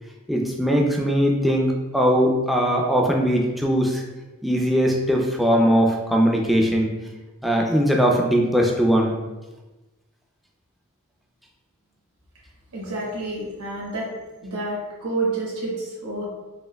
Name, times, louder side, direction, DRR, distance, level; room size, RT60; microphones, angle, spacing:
voice 1, 0.3-4.0 4.4-6.9 7.4-9.1, equal, ahead, -1 dB, 0.4 m, -20 dB
voice 2, 12.7-14.1 14.4-16.3, right 2 dB, 70° right, -5 dB, 1.1 m, -29 dB
4.3 x 3.3 x 2.2 m, 1.1 s
head